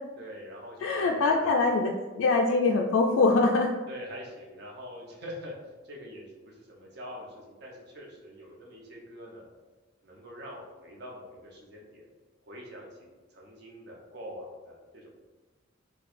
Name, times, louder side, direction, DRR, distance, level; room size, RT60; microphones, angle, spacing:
voice 1, 0.2-1.8 3.9-5.5 5.8-9.5 10.0-12.1 12.4-12.9 13.3-15.1, equal, 55° right, -2 dB, 0.8 m, -44 dB
voice 2, 0.8-3.7, left 3 dB, 90° left, 0 dB, 0.3 m, -23 dB
4.4 x 2.3 x 2.4 m, 1.3 s
head